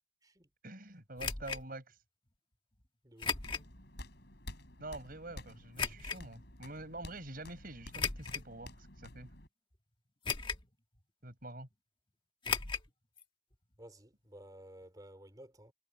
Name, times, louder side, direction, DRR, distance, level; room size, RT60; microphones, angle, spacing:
voice 1, 0.6-1.9 4.8-9.3 11.2-11.7, right 2 dB, 45° right, 7.7 m, -46 dB
sound 1, 1.2-1.6 3.2-3.7 4.2-4.3 5.8-6.2 7.9-8.5 9.1-9.2 10.2-10.7 11.0-11.1 12.4-12.9 13.2-13.3 13.5-13.6, left 5 dB, 25° left, 1.6 m, -36 dB
sound 2, 3.2-9.5, left 1 dB, 55° left, 6.7 m, -51 dB
voice 2, 13.8-15.7, right 1 dB, 20° right, 3.2 m, -54 dB
head